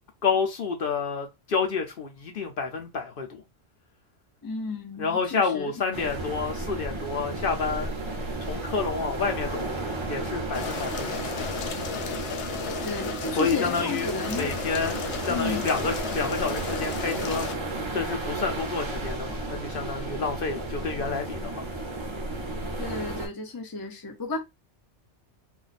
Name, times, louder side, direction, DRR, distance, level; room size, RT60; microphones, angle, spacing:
voice 1, 0.2-3.4 5.0-7.9 8.4-11.2 13.3-15.0 15.2-17.4 17.9-21.7, left 5 dB, 55° left, 0.7 m, -29 dB
voice 2, 4.4-5.7 12.8-14.5 15.3-15.7 22.8-24.4, left 3 dB, 30° left, 0.4 m, -33 dB
sound 1, 5.9-23.3, right 2 dB, 30° right, 0.6 m, -33 dB
sound 2, 10.5-17.6, left 5 dB, 80° left, 0.9 m, -34 dB
2.5 x 2.2 x 4.0 m
omnidirectional pair, 1.2 m